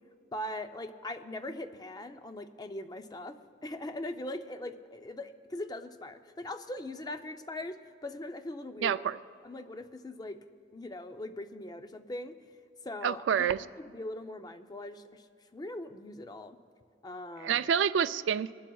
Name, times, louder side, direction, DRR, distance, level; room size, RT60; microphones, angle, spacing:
voice 1, 0.3-9.0 9.4-10.4 10.7-12.3 12.8-15.3 15.5-16.6 17.0-17.7, left 1 dB, 20° left, 8 dB, 0.5 m, -41 dB
voice 2, 8.8-9.2 13.0-13.6 17.4-18.5, right 8 dB, 80° right, 14 dB, 0.3 m, -27 dB
22.5 x 11.5 x 2.3 m, 2.2 s
head